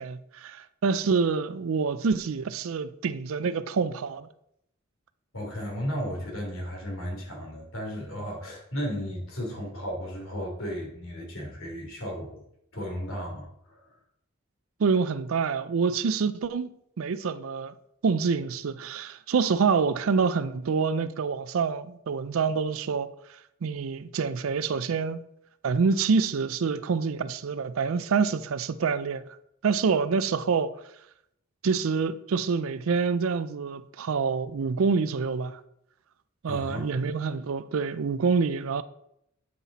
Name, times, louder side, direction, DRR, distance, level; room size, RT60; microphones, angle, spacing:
voice 1, 0.0-4.3 14.8-16.7 17.0-17.7 18.0-23.1 23.6-25.2 25.6-29.2 29.6-30.7 31.6-35.6 36.4-38.8, right 5 dB, 85° right, 0.4 m, -26 dB
voice 2, 5.3-12.4 12.7-14.0 36.5-36.9, equal, 90° left, 3.0 m, -34 dB
8.7 x 5.8 x 4.1 m
head